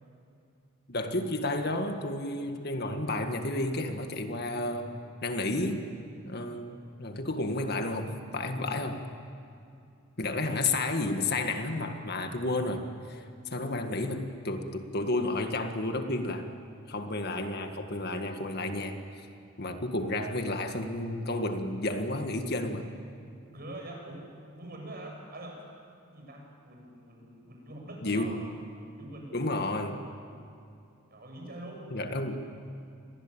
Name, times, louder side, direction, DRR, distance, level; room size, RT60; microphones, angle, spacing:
voice 1, 0.9-5.9 6.2-9.0 10.2-13.2 13.5-16.5 16.9-19.3 19.6-22.9 28.0-28.3 29.3-30.0 31.9-32.4, left 2 dB, 50° left, 6 dB, 1.8 m, -31 dB
voice 2, 23.5-24.3 24.5-25.6 26.1-28.3 28.9-29.6 31.1-31.9, right 1 dB, 45° right, 0 dB, 7.7 m, -44 dB
29.5 x 22.5 x 8.9 m, 2.5 s
head